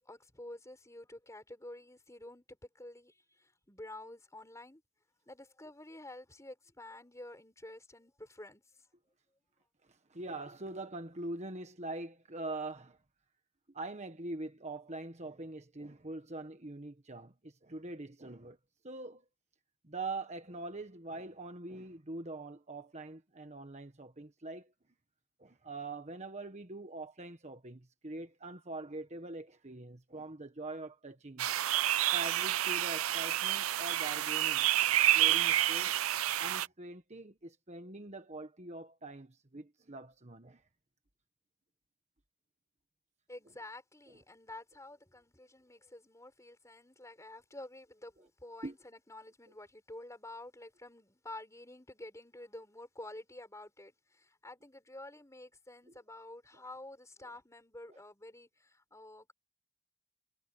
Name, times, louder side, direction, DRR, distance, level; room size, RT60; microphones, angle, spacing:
voice 1, 0.0-4.8 5.3-8.9 43.3-59.3, left 1 dB, 15° left, 5.1 m, -50 dB
voice 2, 9.9-13.0 13.7-18.6 18.8-19.2 19.8-24.7 25.4-31.5 32.1-34.7 35.1-36.0 36.4-40.6 48.6-48.7, right 2 dB, 30° right, 1.4 m, -43 dB
sound 1, 31.4-36.7, right 13 dB, 75° right, 0.6 m, -29 dB
head